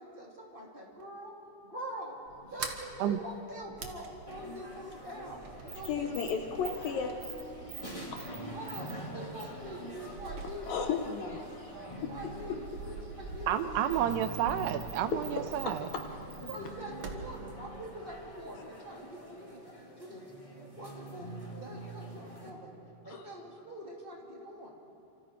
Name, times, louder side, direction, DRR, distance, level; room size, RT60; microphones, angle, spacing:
voice 1, 0.0-1.3 1.6-6.1 8.5-10.9 12.1-13.5 16.5-19.7 20.0-20.4 20.7-22.8 23.0-24.7, right 1 dB, 15° right, -2 dB, 2.5 m, -44 dB
Sliding door, 2.3-18.6, right 5 dB, 55° right, 1.8 m, -46 dB
sound 1, 4.3-22.5, equal, 10° left, 1.6 m, -46 dB
voice 2, 5.9-7.1 10.7-11.4 12.0-12.6 15.1-15.2 15.7-16.1 23.1-23.3, left 6 dB, 70° left, 4 dB, 2.3 m, -34 dB
voice 3, 13.5-15.9, right 10 dB, 85° right, 10 dB, 2.9 m, -30 dB
29.5 x 26.5 x 4.6 m, 2.7 s
omnidirectional pair, 4.8 m